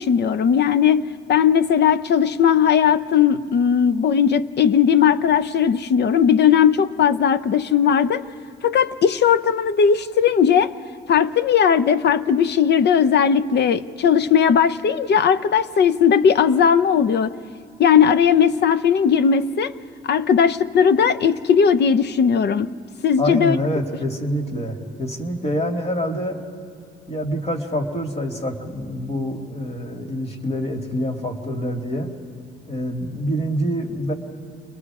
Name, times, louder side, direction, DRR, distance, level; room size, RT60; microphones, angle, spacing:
voice 1, 0.0-8.2 8.6-10.7 11.1-17.3 17.8-19.7 20.0-22.7 23.0-23.6, left 7 dB, 60° left, 0.7 m, -17 dB
voice 2, 23.2-26.4 27.1-32.1 32.7-34.1, equal, 30° left, 2.5 m, -26 dB
29.5 x 21.5 x 4.9 m
cardioid pair, 90°, 20 cm